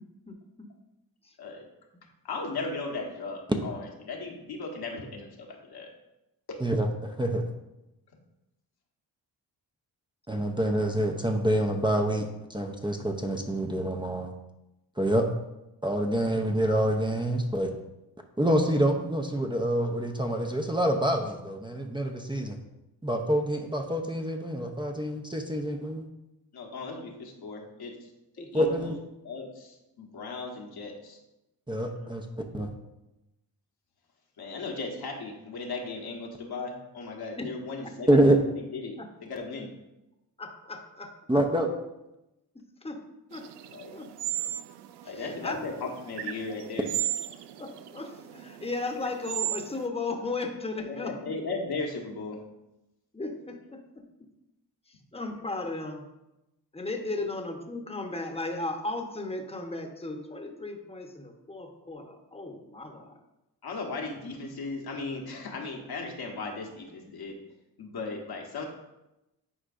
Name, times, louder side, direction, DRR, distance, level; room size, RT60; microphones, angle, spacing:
voice 1, 2.2-5.9 6.5-6.6 26.5-28.1 28.4-28.9 29.2-31.2 34.4-38.3 38.6-39.7 43.7-43.9 45.0-46.9 50.8-52.4 57.1-57.2 63.6-67.4 67.8-68.7, left 3 dB, 65° left, 0 dB, 1.4 m, -37 dB
voice 2, 6.6-7.4 10.3-14.3 15.0-15.3 15.8-17.7 18.4-22.6 23.0-26.0 28.5-28.9 31.7-32.7 38.1-38.4 41.3-41.7, right 1 dB, 10° right, 3 dB, 0.8 m, -26 dB
voice 3, 28.4-28.7 31.8-32.1 37.4-37.5 39.0-39.1 40.4-41.4 42.8-43.0 43.3-43.4 43.9-44.1 45.0-45.9 47.6-51.1 53.1-53.8 55.1-56.0 56.7-63.2, left 2 dB, 15° left, 3 dB, 1.1 m, -36 dB
sound 1, 43.3-49.8, right 13 dB, 75° right, 0.5 m, -36 dB
10.0 x 4.5 x 2.6 m, 0.94 s
supercardioid pair, 55°, 41 cm